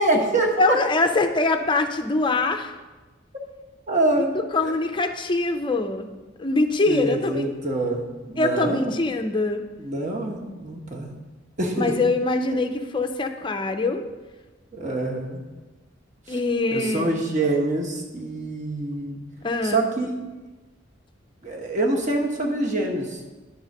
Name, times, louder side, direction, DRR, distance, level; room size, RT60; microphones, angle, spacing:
voice 1, 0.0-0.8 3.9-4.4 4.6-4.7 6.9-9.0 9.8-11.1 11.6-12.0 14.7-15.4 16.3-16.4 16.7-19.2 19.6-20.1 21.4-23.2, right 2 dB, 40° right, 0 dB, 1.2 m, -25 dB
voice 2, 0.6-2.7 4.5-6.1 6.4-7.5 8.4-9.6 11.8-14.0 16.3-17.2 19.4-19.8, left 3 dB, 25° left, 6 dB, 0.5 m, -23 dB
9.8 x 3.9 x 6.5 m, 1.2 s
head